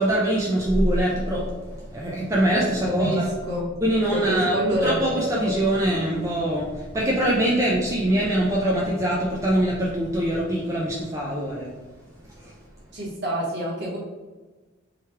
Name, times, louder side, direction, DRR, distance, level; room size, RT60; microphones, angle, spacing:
voice 1, 0.0-1.5 1.9-3.2 3.8-4.5 4.8-11.7, right 1 dB, 15° right, -4 dB, 0.4 m, -23 dB
sound 1, 1.5-10.4, equal, 35° right, 1.1 m, -38 dB
voice 2, 2.8-3.7 4.1-5.0 12.9-14.0, equal, 55° right, -5 dB, 1.2 m, -27 dB
3.1 x 2.3 x 4.3 m, 1.2 s
head